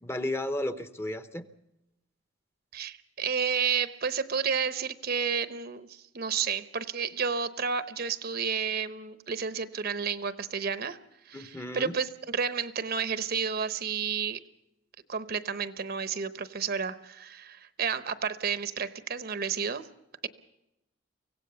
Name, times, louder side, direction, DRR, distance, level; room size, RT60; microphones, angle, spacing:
voice 1, 0.0-1.4 11.3-12.0, left 1 dB, 15° left, 11 dB, 0.8 m, -33 dB
voice 2, 2.7-11.0 11.2-14.4 15.1-19.9, right 6 dB, 50° right, 13 dB, 0.9 m, -31 dB
24.5 x 17.0 x 6.8 m, 0.88 s
head